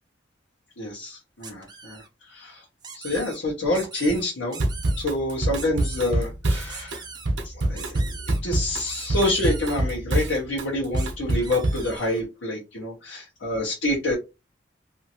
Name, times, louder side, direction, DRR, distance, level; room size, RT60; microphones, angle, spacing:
voice 1, 0.8-2.6 2.9-4.6 5.0-7.1 7.4-14.1, left 1 dB, 80° left, -5 dB, 1.0 m, -27 dB
sound 1, 1.4-2.1 2.8-3.4 3.7-4.2 4.5-5.0 5.5-6.1 6.7-7.3 7.8-8.4 8.9-9.8 11.0-11.1 11.4-12.2, right 5 dB, 25° right, 0.5 m, -41 dB
Drum kit / Drum, 4.6-11.9, right 1 dB, 70° right, 0.7 m, -25 dB
2.7 x 2.6 x 2.8 m, 0.26 s
head